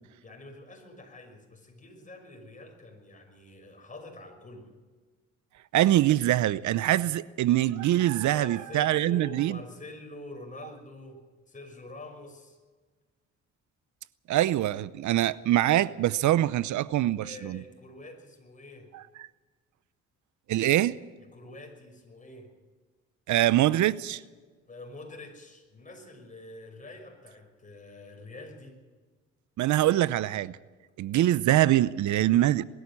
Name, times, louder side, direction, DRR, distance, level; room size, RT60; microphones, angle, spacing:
voice 1, 0.2-4.7 8.3-12.6 17.2-18.9 21.3-22.5 24.7-28.8, left 2 dB, 25° left, 6.0 m, -46 dB
voice 2, 5.7-9.6 14.3-17.6 18.9-19.0 20.5-21.0 23.3-24.2 29.6-30.6 31.0-32.6, right 14 dB, 75° right, 0.7 m, -24 dB
21.5 x 13.5 x 9.9 m
cardioid pair, 90°, 30 cm